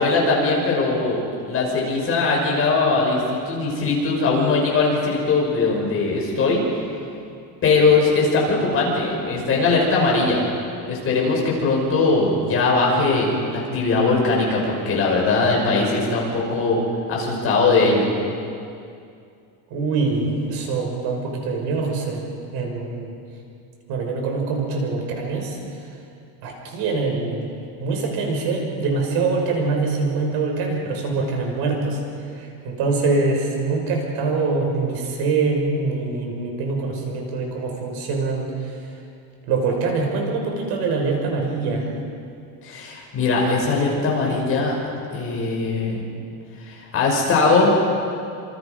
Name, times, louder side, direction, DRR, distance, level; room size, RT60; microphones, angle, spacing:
voice 1, 0.0-6.6 7.6-10.4 10.9-16.8 17.1-18.1 42.6-44.8 45.1-46.0 46.6-47.7, left 3 dB, 30° left, -2 dB, 5.9 m, -20 dB
voice 2, 19.7-22.3 22.5-23.1 23.9-25.6 26.4-32.0 32.3-38.8 39.5-41.9, right 3 dB, 60° right, 1 dB, 5.9 m, -24 dB
28.5 x 27.5 x 5.4 m, 2.4 s
cardioid pair, 180°, 44 cm